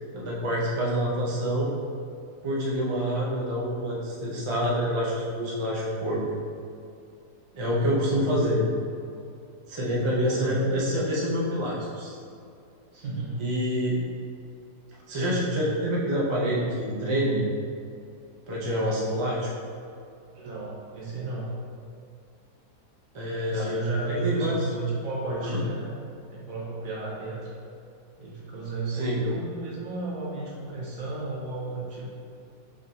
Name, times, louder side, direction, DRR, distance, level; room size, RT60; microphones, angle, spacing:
voice 1, 0.1-1.7 2.4-6.2 7.5-8.6 9.7-12.2 13.4-14.0 15.1-17.4 18.5-19.5 23.1-23.7 24.0-24.6 25.4-25.6 28.9-29.2, equal, 40° right, -6 dB, 0.4 m, -27 dB
voice 2, 8.0-8.4 10.1-10.6 12.9-13.5 19.2-19.4 20.3-21.5 23.5-25.9 26.3-27.5 28.2-32.1, right 3 dB, 60° right, -5 dB, 1.3 m, -33 dB
5.0 x 3.7 x 2.7 m, 2.4 s
omnidirectional pair, 1.8 m